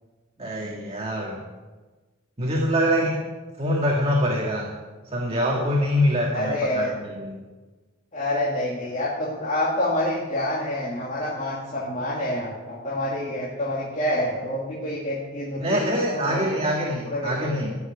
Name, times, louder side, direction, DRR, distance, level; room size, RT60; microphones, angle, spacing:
voice 1, 0.4-1.4 2.4-3.2 3.6-4.7 5.1-7.3 15.6-17.8, equal, 30° right, -1 dB, 1.8 m, -24 dB
voice 2, 6.3-6.9 8.1-16.7 17.1-17.6, left 1 dB, 35° left, -6 dB, 2.5 m, -27 dB
15.0 x 7.2 x 9.6 m, 1.3 s
head